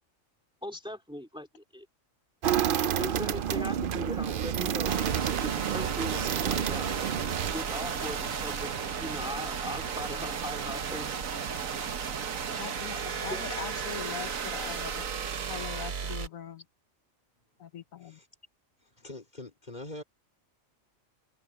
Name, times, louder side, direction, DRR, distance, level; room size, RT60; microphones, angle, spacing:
voice 1, 0.6-1.9 2.8-6.9 7.5-8.7 9.0-11.1 12.9-13.4, left 1 dB, 5° right, 2.6 m, -39 dB
sound 1, 2.4-7.5, right 9 dB, 60° right, 0.6 m, -29 dB
sound 2, 4.8-16.3, right 6 dB, 80° right, 1.6 m, -34 dB
sound 3, 6.7-13.3, right 1 dB, 30° right, 3.7 m, -55 dB
voice 2, 12.5-15.1 15.5-16.6 17.6-18.2, left 8 dB, 80° left, 1.2 m, -41 dB
voice 3, 18.9-20.0, left 2 dB, 30° left, 3.9 m, -43 dB
omnidirectional pair, 1.4 m